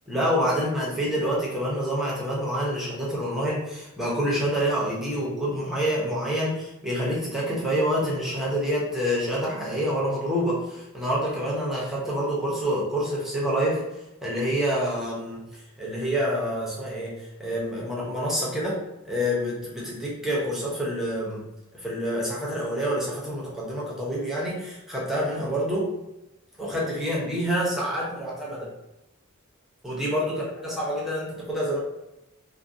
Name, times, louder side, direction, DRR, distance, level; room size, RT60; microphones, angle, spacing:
voice 1, 0.1-13.8 14.2-21.4 21.7-25.9 26.6-28.7 29.8-31.8, equal, ahead, -6 dB, 0.6 m, -27 dB
2.5 x 2.1 x 2.6 m, 0.92 s
head